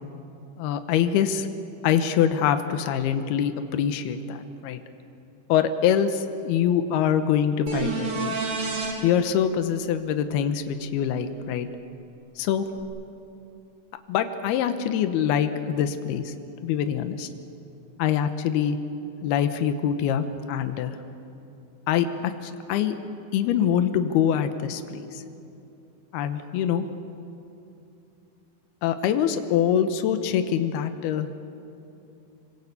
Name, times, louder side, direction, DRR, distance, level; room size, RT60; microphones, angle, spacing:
voice 1, 0.6-1.5 1.8-4.8 5.5-8.4 9.0-11.7 12.4-12.6 14.1-16.3 16.6-17.3 18.0-18.8 19.2-21.0 21.9-23.0 23.3-25.2 26.1-26.8 28.8-31.3, left 9 dB, 85° left, 8 dB, 3.0 m, -24 dB
sound 1, 7.7-8.9 12.8-12.9, right 4 dB, 45° right, 4.5 m, -28 dB
27.0 x 23.5 x 8.4 m, 2.7 s
omnidirectional pair, 4.4 m